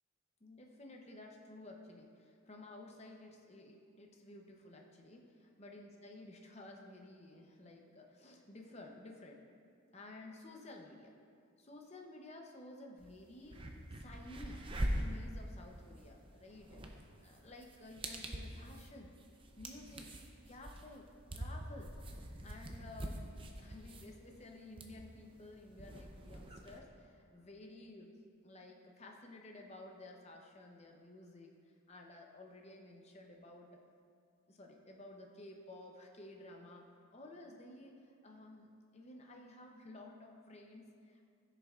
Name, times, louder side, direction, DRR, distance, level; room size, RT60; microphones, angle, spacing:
voice 1, 0.4-9.4 9.9-11.1 11.6-13.6 13.9-14.6 15.0-16.8 17.2-19.1 19.6-20.1 20.5-22.0 22.4-28.1 28.4-31.5 31.9-33.7 34.5-41.2, left 2 dB, 30° left, 1 dB, 0.8 m, -53 dB
sound 1, 13.0-13.1 13.4-26.8, right 1 dB, 25° right, 0.6 m, -44 dB
15.5 x 6.7 x 2.4 m, 2.3 s
head